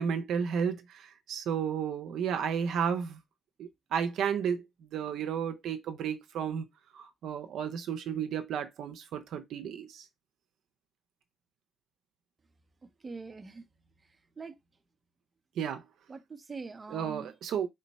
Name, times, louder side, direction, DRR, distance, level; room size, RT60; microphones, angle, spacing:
voice 1, 0.0-3.2 3.6-4.6 4.9-6.6 6.9-10.1 15.6-15.8 16.9-17.7, right 7 dB, 75° right, 0.6 m, -32 dB
voice 2, 12.8-13.6 14.4-14.6 16.1-17.3, right 4 dB, 30° right, 0.7 m, -43 dB
3.8 x 2.2 x 4.0 m
cardioid pair, 90°, 0 cm